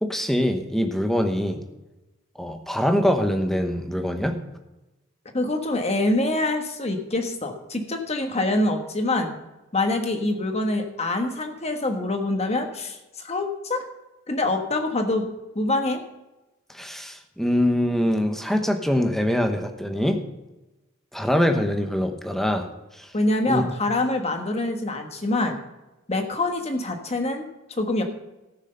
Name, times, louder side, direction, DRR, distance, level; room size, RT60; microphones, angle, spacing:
voice 1, 0.0-1.6 2.4-4.4 16.7-20.2 21.1-22.7 23.0-23.1 23.5-23.6, equal, ahead, 5 dB, 1.0 m, -23 dB
voice 2, 5.3-9.3 9.7-13.0 13.2-13.8 14.3-15.3 15.5-16.0 23.1-25.6 26.1-27.5 27.8-28.0, left 2 dB, 30° left, 5 dB, 1.4 m, -25 dB
14.0 x 6.3 x 6.8 m, 1.0 s
head